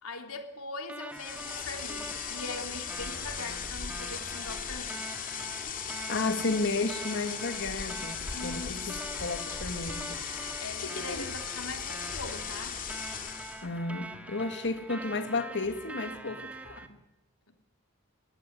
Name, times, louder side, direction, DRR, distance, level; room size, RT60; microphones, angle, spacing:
voice 1, 0.0-5.0 8.3-9.3 10.6-12.8, left 3 dB, 85° left, 3.2 m, -41 dB
sound 1, 0.9-16.9, right 2 dB, 5° right, 2.0 m, -44 dB
sound 2, 1.1-13.7, left 7 dB, 40° left, 2.5 m, -38 dB
voice 2, 6.1-10.2 10.8-11.2 13.6-17.0, left 3 dB, 55° left, 2.1 m, -33 dB
21.5 x 16.5 x 9.3 m
head